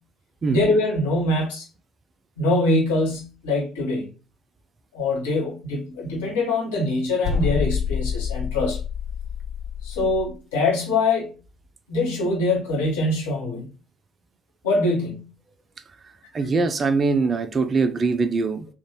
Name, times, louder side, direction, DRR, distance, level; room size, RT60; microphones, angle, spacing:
voice 1, 0.5-1.6 2.4-4.1 4.9-8.8 9.8-11.3 11.9-13.7 14.6-15.3, left 2 dB, 70° left, 1.3 m, -23 dB
sound 1, 7.2-10.3, left 6 dB, 55° left, 0.8 m, -27 dB
voice 2, 16.3-18.7, right 4 dB, 35° right, 0.4 m, -22 dB
3.6 x 2.6 x 3.0 m
figure-of-eight pair, 50°, 0 cm